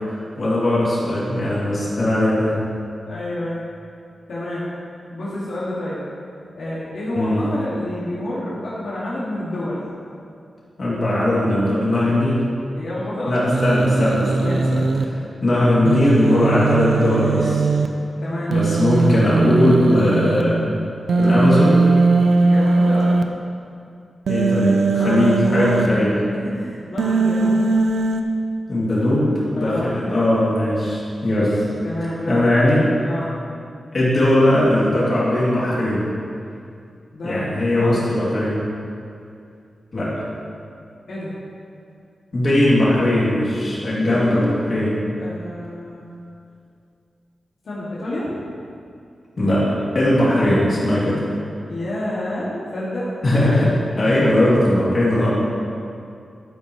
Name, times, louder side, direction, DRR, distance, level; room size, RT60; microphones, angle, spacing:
voice 1, 0.4-2.6 7.1-7.4 10.8-12.4 13.3-14.8 15.4-17.7 18.5-20.6 21.2-21.8 24.3-26.1 28.7-31.7 32.3-32.9 33.9-36.0 37.2-38.6 39.9-40.2 42.3-44.4 44.7-44.9 49.4-49.7 49.9-51.2 53.2-55.3, left 1 dB, 40° left, -8 dB, 2.6 m, -19 dB
voice 2, 3.0-3.6 4.3-4.7 5.1-6.0 6.5-9.8 12.8-13.3 14.0-14.1 14.4-14.7 18.2-18.5 22.4-23.1 24.9-25.9 26.4-27.7 29.6-30.0 31.8-32.4 33.0-33.3 37.1-38.1 41.1-41.3 44.0-44.5 45.2-46.1 47.6-48.3 51.7-53.1, left 1 dB, 65° left, -9 dB, 2.1 m, -29 dB
Human voice, 13.5-15.0 15.9-17.9 18.5-20.4 21.1-23.2 24.3-25.9 27.0-28.2, right 3 dB, 70° right, 0.6 m, -19 dB
11.5 x 9.2 x 3.1 m, 2.4 s
wide cardioid pair, 175°, 0 cm